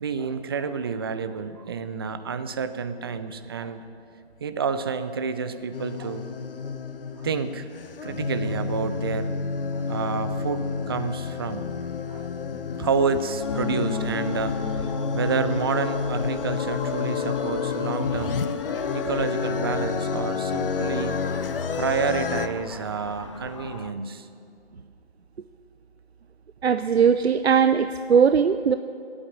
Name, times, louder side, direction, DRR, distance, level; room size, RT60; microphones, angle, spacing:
voice 1, 0.0-3.8 4.4-6.2 7.2-7.7 8.0-9.3 9.7-11.7 12.1-12.3 12.8-18.6 18.9-21.3 21.8-24.3, right 5 dB, 25° right, 11 dB, 0.5 m, -29 dB
sound 1, 5.7-22.5, left 5 dB, 60° left, 0.9 m, -29 dB
sound 2, 13.4-23.9, left 5 dB, 30° left, 0.4 m, -36 dB
voice 2, 26.6-28.7, right 7 dB, 80° right, 11 dB, 0.6 m, -19 dB
18.0 x 8.8 x 8.5 m, 2.5 s
figure-of-eight pair, 150°, 31 cm